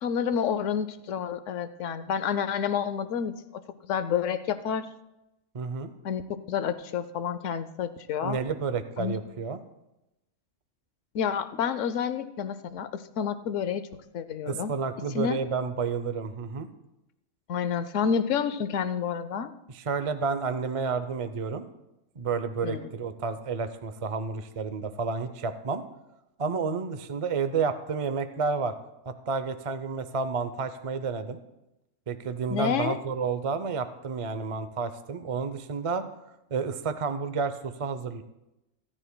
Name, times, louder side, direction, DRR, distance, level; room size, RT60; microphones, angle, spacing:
voice 1, 0.0-3.3 3.8-4.9 6.0-6.2 6.5-8.4 9.0-9.1 11.1-13.9 14.1-14.7 15.1-15.4 17.5-19.5 22.6-22.9 32.5-33.0, left 7 dB, 80° left, 12 dB, 1.0 m, -29 dB
voice 2, 5.5-5.9 8.2-9.6 14.5-16.7 19.7-21.6 22.2-25.8 26.4-28.7 29.1-31.4 32.1-36.0 36.5-38.2, right 5 dB, 40° right, 10 dB, 0.5 m, -30 dB
26.5 x 10.0 x 2.2 m, 0.92 s
omnidirectional pair, 1.3 m